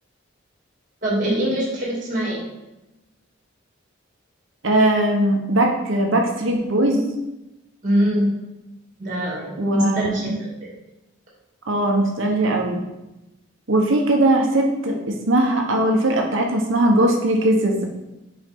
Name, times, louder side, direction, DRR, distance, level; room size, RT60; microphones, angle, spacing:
voice 1, 1.0-2.4 7.8-8.3 9.0-10.5, equal, 40° right, -5 dB, 2.5 m, -23 dB
voice 2, 4.6-7.1 9.6-10.4 11.7-12.8 13.7-17.9, right 1 dB, 70° right, 1 dB, 1.1 m, -20 dB
7.0 x 4.8 x 3.7 m, 0.98 s
head